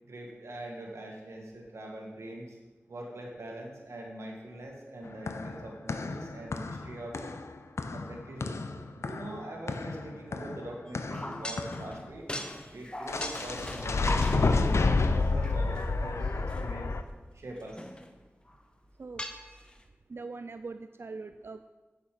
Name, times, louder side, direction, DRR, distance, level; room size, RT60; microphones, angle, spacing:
voice 1, 0.0-2.6 2.9-7.3 7.9-8.6 9.0-12.2 12.7-14.8 15.1-16.9 17.3-17.9, right 1 dB, 90° right, -1 dB, 1.7 m, -42 dB
sound 1, 5.0-12.0 13.1-17.0, left 3 dB, 80° left, 0.5 m, -30 dB
sound 2, 10.9-14.8 15.4-15.9 16.5-16.6 17.6-18.2 18.5-18.6 19.2-19.7, left 1 dB, 20° left, 0.8 m, -39 dB
voice 2, 20.1-21.7, right 3 dB, 60° right, 9 dB, 0.3 m, -42 dB
8.3 x 6.8 x 4.9 m, 1.2 s
cardioid pair, 45°, 5 cm